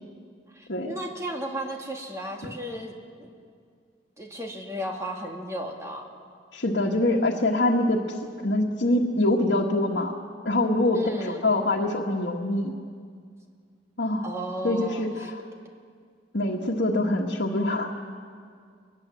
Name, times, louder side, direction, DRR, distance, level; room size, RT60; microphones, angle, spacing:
voice 1, 0.5-3.3 4.2-6.0 10.9-11.4 14.2-15.3, right 1 dB, 15° right, 1 dB, 2.3 m, -34 dB
voice 2, 6.5-8.2 8.4-10.1 10.4-12.7 14.0-14.3 14.6-15.4 16.3-17.9, left 1 dB, 75° left, -2 dB, 1.6 m, -24 dB
21.5 x 20.5 x 7.7 m, 2.1 s
head